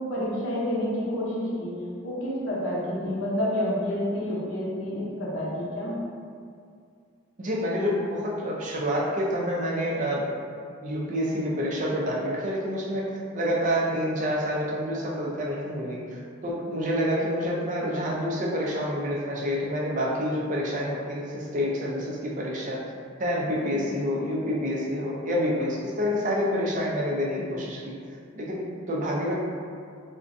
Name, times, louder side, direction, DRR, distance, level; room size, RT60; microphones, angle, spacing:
voice 1, 0.1-6.0 23.7-23.8, left 1 dB, 65° left, -6 dB, 0.6 m, -29 dB
voice 2, 7.4-10.4 10.8-13.0 13.3-22.8 23.2-27.8 28.3-29.3, equal, 35° right, -4 dB, 0.4 m, -28 dB
2.5 x 2.1 x 2.5 m, 2.3 s
head